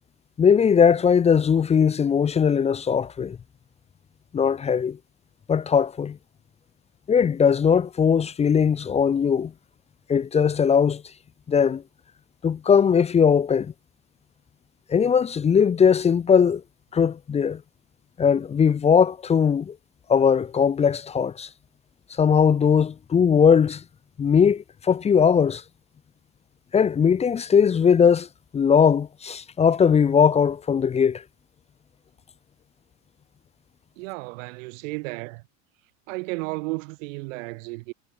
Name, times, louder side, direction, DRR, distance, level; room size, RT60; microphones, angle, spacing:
voice 1, 0.4-3.4 4.3-5.0 5.5-6.2 7.1-9.5 10.1-11.0 11.5-11.8 12.4-13.7 14.9-16.6 16.9-17.6 18.2-19.7 20.1-21.5 22.2-23.8 24.2-25.6 26.7-28.3 28.5-31.2, left 7 dB, 15° left, 1.4 m, -19 dB
voice 2, 34.0-35.4 36.1-37.9, right 26 dB, 70° right, 5.4 m, -33 dB
cardioid pair, 180°, 40 cm